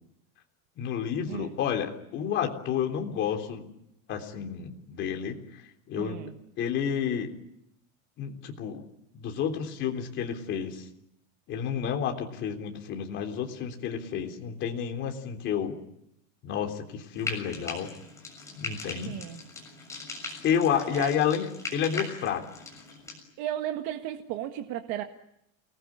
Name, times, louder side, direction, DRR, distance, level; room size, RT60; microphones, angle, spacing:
voice 1, 0.8-3.7 4.1-5.4 5.9-6.2 6.6-7.3 8.2-8.8 9.1-10.8 11.5-15.7 16.4-17.9 18.5-19.1 20.4-21.5 21.7-22.4, left 8 dB, 30° left, 3 dB, 3.5 m, -30 dB
voice 2, 1.3-1.6 5.9-6.4 19.0-19.4 20.7-21.1 23.4-25.0, right 12 dB, 45° right, 6 dB, 1.7 m, -35 dB
Frying (food), 17.2-23.2, left 4 dB, 10° left, 7.0 m, -40 dB
29.0 x 20.0 x 9.9 m, 0.79 s
supercardioid pair, 170°, 37 cm